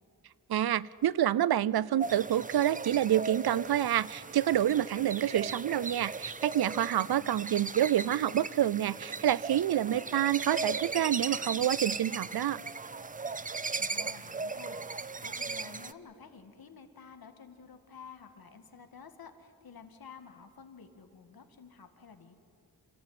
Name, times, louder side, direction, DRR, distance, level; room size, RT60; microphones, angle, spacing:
voice 1, 0.5-12.6, right 11 dB, 90° right, 21 dB, 0.5 m, -28 dB
sound 1, 2.0-15.9, right 4 dB, 20° right, 0.5 m, -38 dB
voice 2, 6.9-7.5 13.3-13.5 13.8-22.4, left 5 dB, 75° left, 7 dB, 1.8 m, -52 dB
28.0 x 14.5 x 9.3 m, 2.7 s
wide cardioid pair, 140°, 37 cm